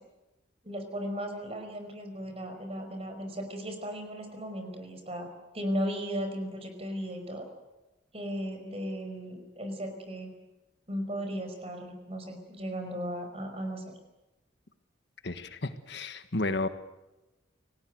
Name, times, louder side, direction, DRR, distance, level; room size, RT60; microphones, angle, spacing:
voice 1, 0.6-5.3 5.5-7.5 8.1-10.3 10.9-13.9, equal, 30° right, 5 dB, 5.2 m, -36 dB
voice 2, 15.2-16.7, left 2 dB, 60° left, 9 dB, 1.5 m, -32 dB
29.0 x 19.0 x 7.8 m, 1.0 s
head